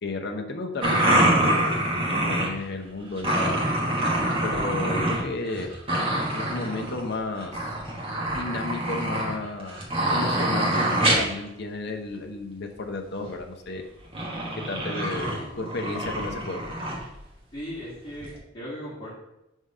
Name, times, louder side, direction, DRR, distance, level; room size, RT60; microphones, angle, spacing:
voice 1, 0.0-3.8 4.4-5.8 6.3-7.7 8.4-9.8 10.1-13.8 14.7-16.6, left 2 dB, 55° left, 3 dB, 0.7 m, -33 dB
sound 1, 0.8-2.6 3.1-5.2 5.5-7.1 7.4-11.4 13.2-13.3 14.1-17.0 17.8-17.9 18.2-18.4, right 1 dB, 25° right, 1.2 m, -25 dB
voice 2, 17.5-19.1, equal, 25° left, -12 dB, 1.8 m, -37 dB
5.1 x 3.6 x 5.5 m, 0.88 s
head